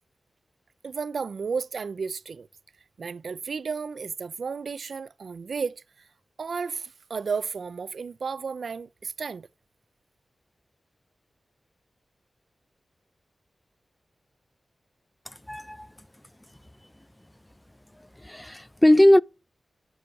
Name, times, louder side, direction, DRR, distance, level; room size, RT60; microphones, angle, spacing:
voice 1, 0.8-2.5 3.0-5.8 6.4-9.5, right 5 dB, 80° right, 0.3 m, -33 dB
voice 2, 15.5-15.9 18.2-19.2, left 1 dB, 15° left, 0.3 m, -19 dB
7.7 x 4.6 x 4.6 m
cardioid pair, 45°, 0 cm